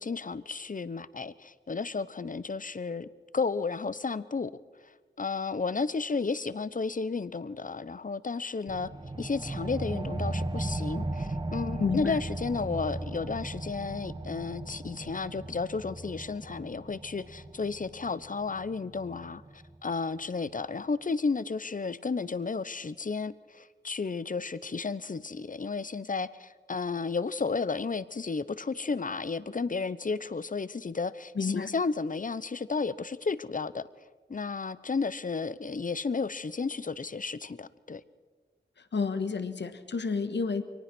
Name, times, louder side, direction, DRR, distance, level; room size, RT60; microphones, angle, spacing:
voice 1, 0.0-3.1 3.3-4.5 5.2-8.9 9.2-33.8 34.3-38.0, left 4 dB, 45° left, 16 dB, 0.9 m, -33 dB
sound 1, 8.7-19.7, right 2 dB, 25° right, 1.5 m, -37 dB
voice 2, 11.8-12.2 31.3-31.7 38.9-40.6, left 5 dB, 75° left, 9 dB, 1.4 m, -30 dB
23.5 x 18.5 x 6.2 m, 1.4 s
cardioid pair, 40°, 18 cm